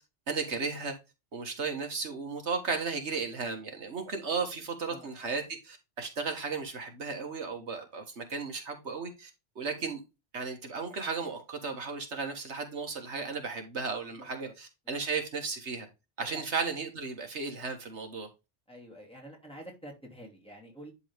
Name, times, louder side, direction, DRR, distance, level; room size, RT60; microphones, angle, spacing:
voice 1, 0.3-0.9 1.3-9.3 9.6-10.0 10.3-15.9 16.2-18.3, right 4 dB, 90° right, 1.9 m, -35 dB
voice 2, 14.1-14.5 16.2-16.5 18.7-20.9, equal, 5° left, 3.0 m, -48 dB
11.0 x 3.8 x 3.5 m
omnidirectional pair, 1.1 m